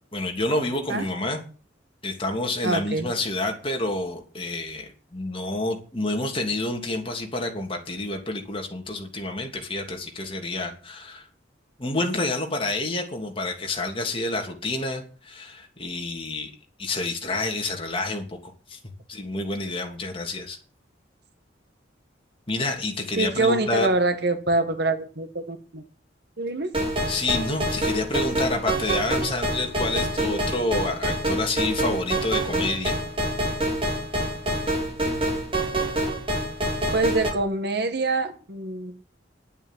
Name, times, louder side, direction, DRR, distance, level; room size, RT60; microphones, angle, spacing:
voice 1, 0.1-1.4 2.0-11.2 11.8-16.5 16.8-18.8 19.1-20.6 22.5-23.9 27.1-32.9, left 2 dB, 30° left, 2 dB, 2.9 m, -28 dB
voice 2, 2.6-3.1 23.2-25.8 26.4-26.7 36.9-39.0, right 2 dB, 60° right, 9 dB, 1.7 m, -25 dB
sound 1, 26.7-37.3, right 1 dB, 30° right, 4.4 m, -26 dB
11.0 x 8.9 x 8.4 m, 0.40 s
head